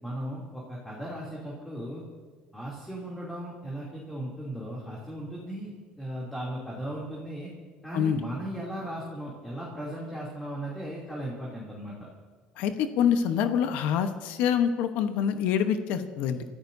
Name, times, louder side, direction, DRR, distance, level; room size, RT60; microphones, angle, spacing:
voice 1, 0.0-2.0 2.5-7.5 7.8-12.1, right 1 dB, 5° left, -5 dB, 2.9 m, -37 dB
voice 2, 12.6-16.4, left 8 dB, 75° left, 8 dB, 1.0 m, -26 dB
28.5 x 14.0 x 2.7 m, 1.5 s
cardioid pair, 145°, 3 cm